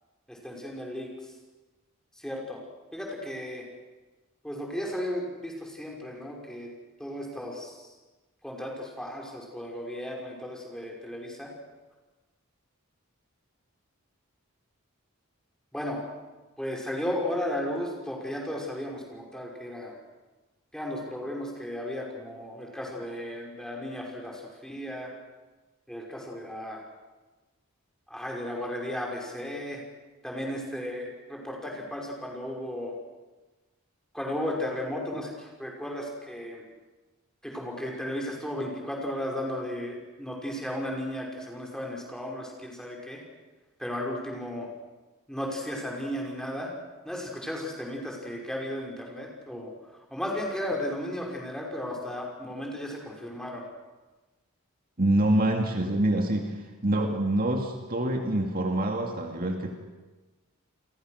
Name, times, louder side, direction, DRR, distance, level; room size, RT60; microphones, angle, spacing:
voice 1, 0.3-1.1 2.2-2.6 2.9-3.7 4.4-6.7 7.0-7.7 8.4-11.5 15.7-16.0 16.6-20.0 20.7-25.1 25.9-26.8 28.1-29.8 30.2-32.9 34.1-36.6 37.4-43.2 43.8-44.7 45.3-46.7 47.0-49.7 50.1-53.6, left 1 dB, 5° left, -1 dB, 5.4 m, -35 dB
voice 2, 55.0-59.8, right 1 dB, 45° right, 3 dB, 2.2 m, -26 dB
30.0 x 23.0 x 6.5 m, 1.2 s
head